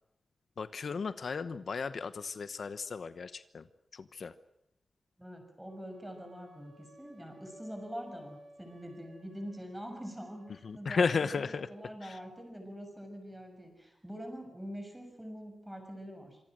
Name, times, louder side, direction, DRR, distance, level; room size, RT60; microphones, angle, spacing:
voice 1, 0.6-3.6 3.9-4.3 10.6-11.7 12.0-12.2, left 5 dB, 65° left, 12 dB, 1.0 m, -34 dB
voice 2, 5.2-16.4, equal, 5° right, 5 dB, 6.8 m, -44 dB
sound 1, 5.6-10.6, equal, 85° right, 7.3 m, -57 dB
26.5 x 24.5 x 6.3 m, 0.84 s
wide cardioid pair, 140°, 0 cm